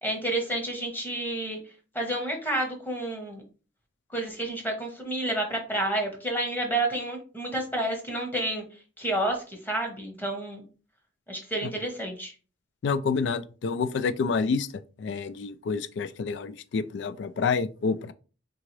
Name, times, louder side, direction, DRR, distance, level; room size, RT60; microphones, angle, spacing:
voice 1, 0.0-1.6 1.9-3.4 4.1-8.6 9.0-10.6 11.3-12.3, right 1 dB, 10° left, 1.0 m, -30 dB
voice 2, 12.8-14.7 15.0-18.1, left 5 dB, 70° left, 0.3 m, -28 dB
3.8 x 3.5 x 3.2 m
head